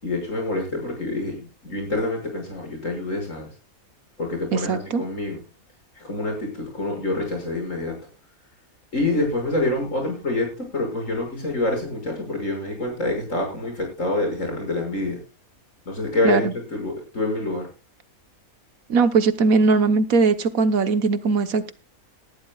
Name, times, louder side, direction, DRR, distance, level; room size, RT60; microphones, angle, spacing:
voice 1, 0.0-3.5 4.2-5.4 6.0-8.0 8.9-15.2 15.9-17.7, left 2 dB, 60° left, 2 dB, 6.6 m, -26 dB
voice 2, 4.5-5.0 16.2-16.5 18.9-21.7, right 4 dB, 70° right, 11 dB, 1.5 m, -20 dB
19.0 x 13.0 x 2.3 m, 0.30 s
omnidirectional pair, 1.5 m